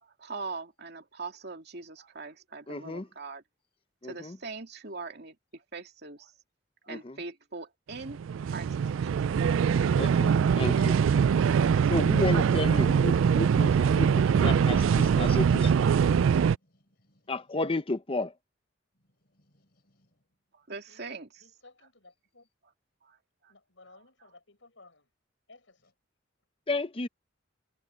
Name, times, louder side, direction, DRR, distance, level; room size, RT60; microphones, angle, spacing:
voice 1, 0.0-3.4 4.0-6.3 6.8-8.8 9.0-9.5 20.5-21.4 23.0-23.2 23.4-23.5, right 4 dB, 55° right, 2.6 m, -42 dB
voice 2, 2.7-3.1 4.0-4.4 6.9-7.2 10.0-11.0 11.9-15.9 17.3-18.3 26.7-27.1, left 2 dB, 30° left, 0.7 m, -32 dB
sound 1, 7.9-16.6, right 7 dB, 85° right, 0.3 m, -23 dB
voice 3, 16.5-17.6 18.9-20.2, equal, 55° left, 5.3 m, -70 dB
voice 4, 21.4-22.5 23.5-25.1 25.5-25.9, left 3 dB, 75° left, 6.3 m, -57 dB
head